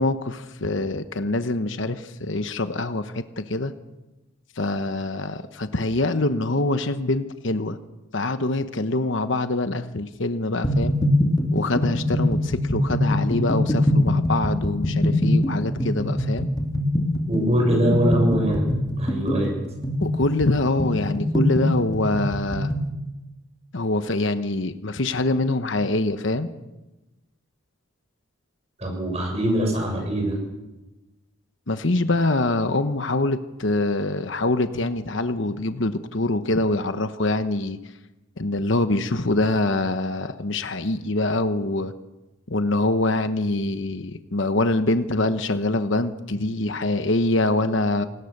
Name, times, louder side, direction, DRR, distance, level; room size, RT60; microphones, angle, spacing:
voice 1, 0.0-3.7 4.6-7.8 8.1-11.0 11.5-16.5 20.0-22.7 23.7-26.5 31.7-37.8 38.4-41.9 42.5-48.1, left 2 dB, 60° left, 9 dB, 1.1 m, -24 dB
sound 1, 10.6-22.9, left 1 dB, 20° left, 2.6 m, -23 dB
voice 2, 17.3-18.7 19.0-19.5 28.8-30.4, right 1 dB, 30° right, 1 dB, 7.0 m, -22 dB
28.0 x 19.0 x 6.7 m, 1.1 s
head